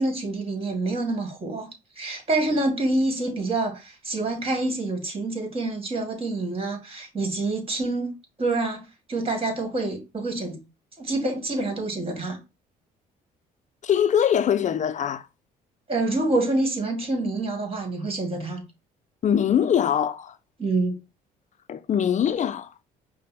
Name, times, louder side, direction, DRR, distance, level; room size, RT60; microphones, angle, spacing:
voice 1, 0.0-1.7 2.0-8.1 8.4-8.8 9.1-10.6 11.0-12.4 15.9-18.6 20.6-21.0, right 2 dB, 30° right, 2.0 m, -27 dB
voice 2, 13.8-15.3 19.2-20.4 21.7-22.7, left 9 dB, 40° left, 0.5 m, -22 dB
5.2 x 2.2 x 4.2 m
supercardioid pair, 65°, 18 cm